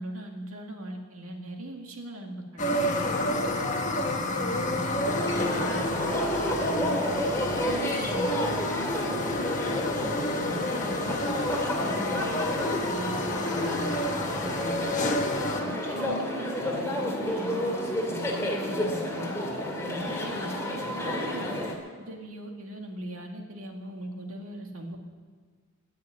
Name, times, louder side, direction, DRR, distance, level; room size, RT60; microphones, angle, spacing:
voice 1, 0.0-3.1 3.9-6.1 6.6-8.6 9.1-11.4 11.7-12.4 12.8-14.9 15.4-17.7 18.0-19.3 19.8-21.6 22.0-25.0, right 1 dB, 70° right, 2 dB, 2.2 m, -39 dB
sound 1, 2.6-15.6, left 1 dB, 35° left, 1.3 m, -30 dB
sound 2, 5.0-21.8, left 1 dB, 15° left, 2.2 m, -30 dB
19.5 x 6.7 x 9.4 m, 1.5 s
head